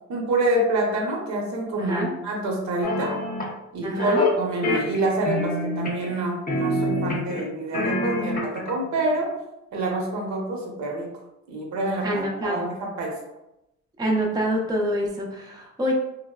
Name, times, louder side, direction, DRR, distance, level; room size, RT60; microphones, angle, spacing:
voice 1, 0.1-3.2 3.7-9.3 9.7-11.1 11.5-13.1, right 2 dB, 65° right, -1 dB, 0.8 m, -26 dB
voice 2, 1.8-2.1 3.8-4.2 12.0-12.7 14.0-15.9, equal, 15° right, -1 dB, 0.5 m, -26 dB
sound 1, 2.8-3.5 4.0-4.3 4.6-6.2 6.5-7.4 7.7-8.7, left 2 dB, 30° left, 0.7 m, -26 dB
3.2 x 2.0 x 2.3 m, 0.88 s
cardioid pair, 90°, 30 cm